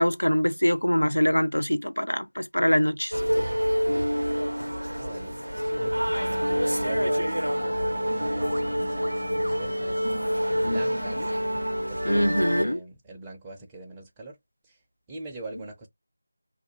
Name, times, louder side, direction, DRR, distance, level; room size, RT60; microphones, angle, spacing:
voice 1, 0.0-3.1 10.6-10.8 12.1-12.8, equal, 85° left, 0.4 m, -23 dB
sound 1, 3.1-12.6, equal, 85° right, 0.5 m, -27 dB
voice 2, 4.9-10.0 10.5-11.3 11.9-14.4 14.6-14.8 15.1-15.9, right 3 dB, 10° right, 0.5 m, -43 dB
sound 2, 6.1-12.3, left 2 dB, 40° left, 0.8 m, -43 dB
2.5 x 2.1 x 2.8 m
figure-of-eight pair, 165°, 0 cm